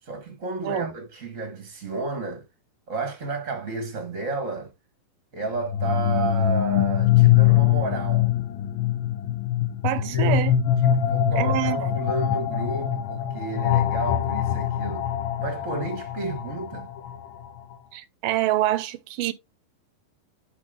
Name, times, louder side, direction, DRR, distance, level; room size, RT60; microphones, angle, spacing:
voice 1, 0.0-2.4 2.9-4.7 5.3-8.3 10.0-10.5 10.8-15.1 15.4-16.9, right 3 dB, 40° right, 1.1 m, -32 dB
sound 1, 5.6-17.4, left 11 dB, 85° left, 2.5 m, -23 dB
voice 2, 9.8-10.5 11.4-11.9 17.9-19.3, right 14 dB, 80° right, 2.2 m, -26 dB
9.7 x 4.3 x 3.7 m
omnidirectional pair, 4.0 m